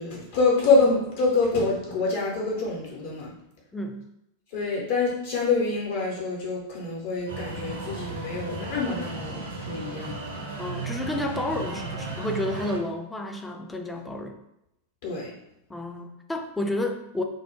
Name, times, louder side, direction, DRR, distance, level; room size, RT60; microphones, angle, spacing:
voice 1, 0.0-3.3 4.5-10.2 15.0-15.3, left 3 dB, 55° left, -3 dB, 0.7 m, -26 dB
voice 2, 3.7-4.0 10.6-14.4 15.7-17.2, left 1 dB, 5° left, 3 dB, 0.3 m, -31 dB
sound 1, 7.3-12.8, right 2 dB, 70° right, 0.6 m, -35 dB
2.2 x 2.0 x 3.0 m, 0.83 s
figure-of-eight pair, 90°, 0 cm